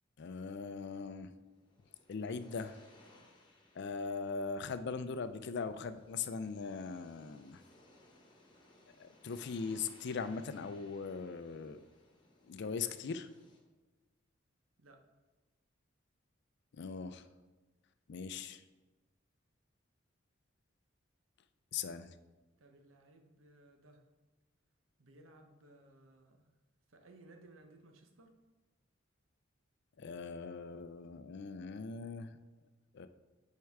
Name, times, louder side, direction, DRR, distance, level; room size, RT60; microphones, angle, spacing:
voice 1, 0.2-1.3 2.1-2.8 3.8-7.6 9.0-11.8 12.5-13.3 16.7-17.3 18.1-18.6 21.7-22.1 30.0-32.4 32.9-33.1, left 5 dB, 60° left, 11 dB, 0.4 m, -40 dB
sound 1, 1.3-13.6, left 2 dB, 25° left, 1.1 m, -64 dB
voice 2, 22.6-24.1 25.0-26.5 26.9-28.4, right 2 dB, 90° right, 4 dB, 0.9 m, -60 dB
9.4 x 4.6 x 3.5 m, 1.2 s
head